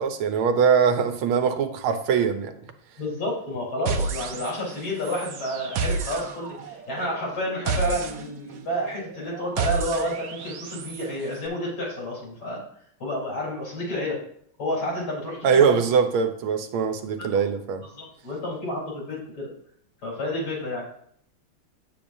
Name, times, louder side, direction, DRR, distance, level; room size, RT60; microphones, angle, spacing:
voice 1, 0.0-2.7 15.4-17.8, right 6 dB, 90° right, 8 dB, 1.7 m, -22 dB
voice 2, 3.0-12.6 13.0-14.2 14.6-15.8 17.2-17.5 18.0-19.5 20.0-20.9, equal, 75° left, -5 dB, 4.7 m, -30 dB
sound 1, 3.9-4.8 5.0-11.0, right 4 dB, 65° right, 1.3 m, -31 dB
8.7 x 8.2 x 2.7 m, 0.66 s
omnidirectional pair, 2.2 m